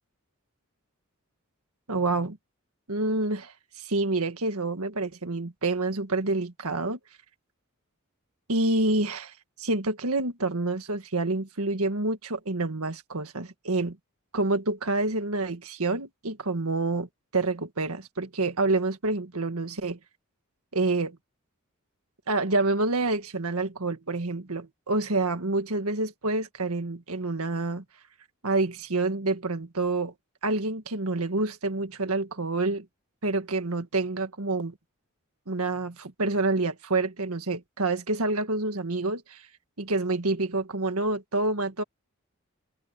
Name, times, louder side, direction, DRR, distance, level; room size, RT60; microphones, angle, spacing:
voice 1, 1.9-2.4 2.9-7.0 8.5-9.3 9.6-14.0 14.3-17.1 17.3-20.0 20.7-21.2 22.3-27.8 28.4-30.1 30.4-32.8 33.2-34.7 35.5-39.4 39.8-41.8, right 2 dB, 85° right, 1.7 m, -28 dB
head